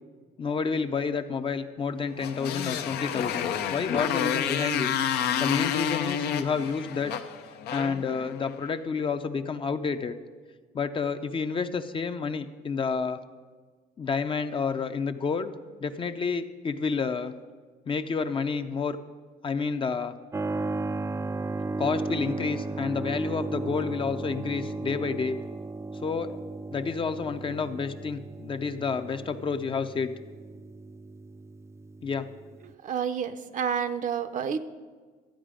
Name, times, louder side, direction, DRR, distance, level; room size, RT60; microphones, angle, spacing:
voice 1, 0.4-4.9 5.4-7.1 7.7-10.2 10.7-13.2 14.0-15.5 15.8-17.3 17.9-19.0 19.4-20.1 21.8-25.4 25.9-26.4 26.7-30.1 32.0-32.3, left 5 dB, 30° left, 8 dB, 0.6 m, -29 dB
Motorcycle, 2.2-8.7, left 8 dB, 75° left, 0.7 m, -29 dB
Keyboard (musical), 20.3-32.7, right 3 dB, 15° right, 0.3 m, -35 dB
voice 2, 32.8-34.6, right 7 dB, 50° right, 10 dB, 0.7 m, -29 dB
13.0 x 8.7 x 5.1 m, 1.5 s
cardioid pair, 110°, 17 cm